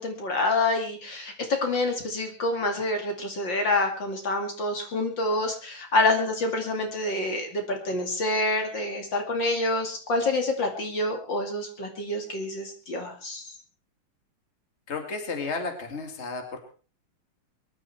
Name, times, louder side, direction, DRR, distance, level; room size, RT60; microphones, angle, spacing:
voice 1, 0.0-13.5, left 2 dB, 55° left, 4 dB, 3.1 m, -27 dB
voice 2, 14.9-16.6, left 4 dB, 30° left, 5 dB, 2.6 m, -33 dB
23.5 x 11.5 x 4.5 m, 0.39 s
omnidirectional pair, 2.4 m